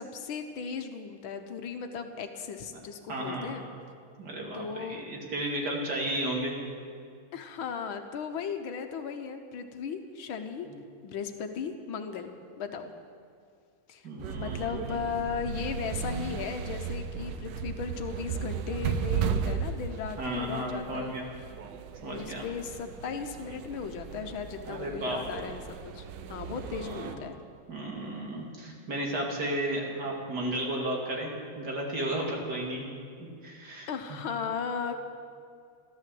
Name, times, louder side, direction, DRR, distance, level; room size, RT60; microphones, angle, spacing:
voice 1, 0.0-3.7 4.5-5.0 7.3-10.7 11.0-12.9 13.9-14.1 14.4-21.1 22.1-27.4 33.9-34.9, left 6 dB, 75° left, 6 dB, 1.7 m, -36 dB
voice 2, 3.1-3.5 4.2-6.6 10.6-10.7 14.0-15.0 20.2-21.2 22.0-22.4 24.6-25.4 26.7-27.1 27.7-32.8 33.4-33.9, right 1 dB, 50° right, -1 dB, 2.8 m, -33 dB
sound 1, 14.2-27.2, right 7 dB, 65° right, 1.3 m, -36 dB
13.5 x 13.0 x 7.7 m, 2.2 s
omnidirectional pair, 2.3 m